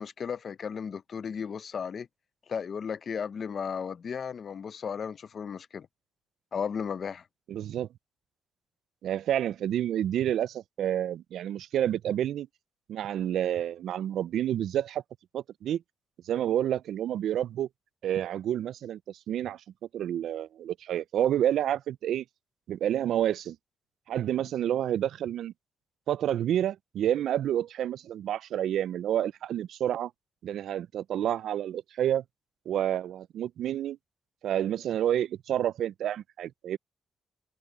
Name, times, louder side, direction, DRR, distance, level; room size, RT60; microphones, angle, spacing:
voice 1, 0.0-2.1 2.5-5.9 6.5-7.2, left 6 dB, 40° left, 0.6 m, -35 dB
voice 2, 7.5-7.9 9.0-12.5 12.9-15.0 15.3-15.8 16.3-17.7 18.0-19.6 19.9-22.2 22.7-23.6 24.1-25.5 26.1-30.1 30.4-32.2 32.7-34.0 34.4-36.8, right 11 dB, 75° right, 0.3 m, -29 dB
open air
wide cardioid pair, 180°, 0 cm